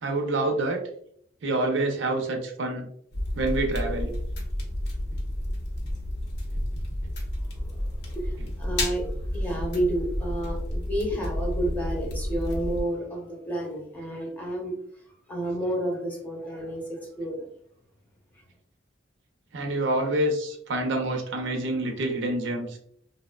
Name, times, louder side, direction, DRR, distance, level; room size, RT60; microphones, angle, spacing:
voice 1, 0.0-0.8 1.4-2.9 3.3-4.1 19.5-22.8, right 2 dB, 75° right, 2 dB, 0.5 m, -27 dB
sound 1, 3.1-12.8, left 1 dB, 60° left, 0.6 m, -31 dB
voice 2, 7.4-14.8 15.3-17.5, right 1 dB, 10° left, -2 dB, 0.7 m, -31 dB
2.7 x 2.1 x 2.2 m, 0.66 s
head